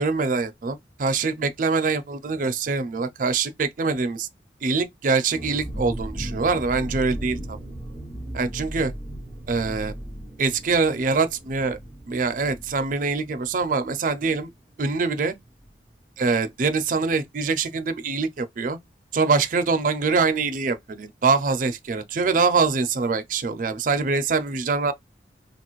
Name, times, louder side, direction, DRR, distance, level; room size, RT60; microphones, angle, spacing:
voice 1, 0.0-4.3 4.6-7.6 8.3-8.9 9.5-9.9 10.4-11.8 12.1-14.5 14.8-15.3 16.2-18.8 19.1-24.9, right 4 dB, 50° right, 0.4 m, -24 dB
sound 1, 5.3-14.7 15.0-15.1 15.4-15.7, right 1 dB, 25° left, 1.1 m, -37 dB
2.9 x 2.4 x 3.0 m
head